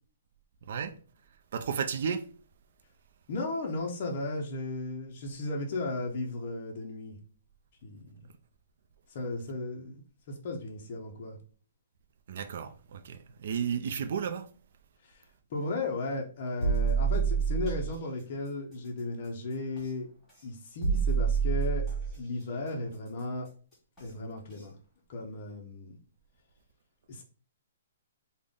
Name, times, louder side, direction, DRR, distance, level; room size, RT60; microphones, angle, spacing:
voice 1, 1.5-2.2 12.3-14.5, right 7 dB, 45° right, 0.4 m, -33 dB
voice 2, 3.3-7.2 7.8-8.0 9.1-10.0 10.3-11.4 15.0-15.2 15.5-20.1 20.4-21.9 22.2-23.5 24.0-24.7 25.1-26.0 27.1-27.2, left 2 dB, 35° left, 0.5 m, -35 dB
sound 1, 16.6-17.9 19.8-19.9 20.8-22.2 24.0-24.1 24.6-24.7, right 6 dB, 5° left, 1.3 m, -27 dB
3.7 x 2.1 x 3.5 m
hypercardioid pair, 175°, 0 cm